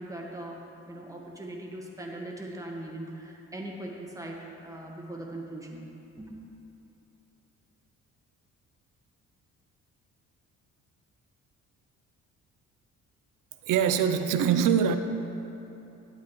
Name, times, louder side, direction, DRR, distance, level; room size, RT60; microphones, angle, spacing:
voice 1, 0.0-5.9 6.2-6.4, right 1 dB, 10° right, -1 dB, 1.6 m, -40 dB
voice 2, 13.6-15.0, right 8 dB, 75° right, 8 dB, 0.6 m, -23 dB
12.0 x 8.3 x 3.1 m, 3.0 s
supercardioid pair, 75°, 32 cm